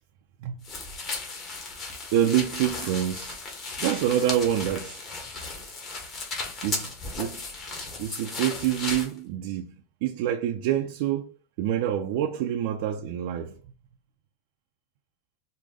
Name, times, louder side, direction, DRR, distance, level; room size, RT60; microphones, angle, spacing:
sound 1, 0.6-9.1, left 3 dB, 30° left, 1.4 m, -35 dB
voice 1, 2.1-3.4 3.8-5.0 6.6-7.4 8.0-9.7 10.0-11.3 11.6-13.6, right 11 dB, 60° right, 0.5 m, -26 dB
4.8 x 2.2 x 3.8 m
supercardioid pair, 135°, 0 cm